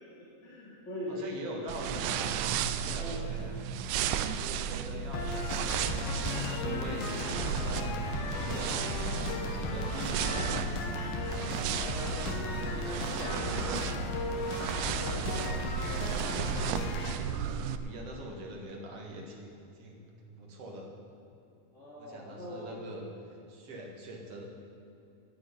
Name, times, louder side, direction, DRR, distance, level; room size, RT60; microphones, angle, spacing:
voice 1, 0.0-1.6 2.9-3.2 11.2-11.5 21.7-22.7, equal, 25° left, -8 dB, 2.2 m, -41 dB
voice 2, 1.1-3.5 4.0-5.7 6.1-10.2 11.8-13.8 14.1-14.8 15.3-20.9 22.0-24.4, equal, 50° right, 0 dB, 2.0 m, -43 dB
sound 1, 1.7-17.8, right 9 dB, 80° right, 2.5 m, -34 dB
sound 2, 5.1-17.1, left 3 dB, 70° left, 2.9 m, -35 dB
11.0 x 10.0 x 9.6 m, 2.6 s
omnidirectional pair, 4.7 m